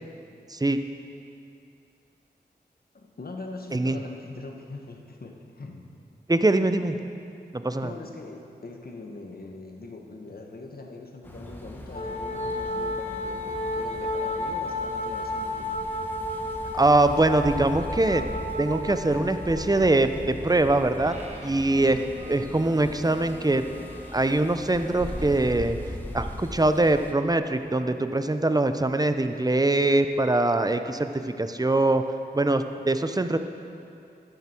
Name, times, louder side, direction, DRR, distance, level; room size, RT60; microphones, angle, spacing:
voice 1, 0.5-0.8 3.7-4.0 6.3-7.0 7.5-7.9 16.7-18.2 18.6-21.2 21.4-22.0 22.3-23.6 24.1-25.8 26.1-32.0 32.3-33.4, right 2 dB, 20° right, 9 dB, 0.7 m, -23 dB
voice 2, 2.9-5.9 7.8-15.7 21.9-22.1, left 3 dB, 60° left, 2 dB, 1.4 m, -42 dB
sound 1, 11.2-27.1, left 1 dB, 10° left, 1.3 m, -40 dB
Wind instrument woodwind instrument, 11.9-19.9, left 1 dB, 40° left, 1.1 m, -32 dB
Bowed string instrument, 21.0-25.7, equal, 35° right, 1.9 m, -45 dB
12.5 x 10.5 x 4.5 m, 2.6 s
cardioid pair, 40°, 18 cm